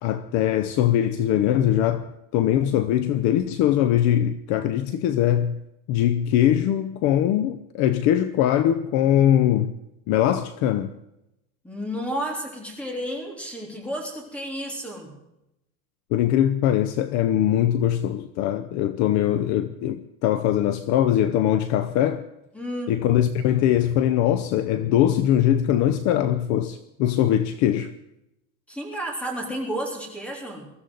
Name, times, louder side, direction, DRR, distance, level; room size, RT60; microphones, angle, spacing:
voice 1, 0.0-2.0 2.3-5.6 5.9-9.7 10.1-10.9 16.1-22.2 22.9-27.9, left 11 dB, 45° left, 0.7 m, -21 dB
voice 2, 11.6-15.1 22.5-23.0 28.7-30.7, equal, 5° left, 3.5 m, -31 dB
23.0 x 14.0 x 4.0 m
cardioid pair, 165°, 40 cm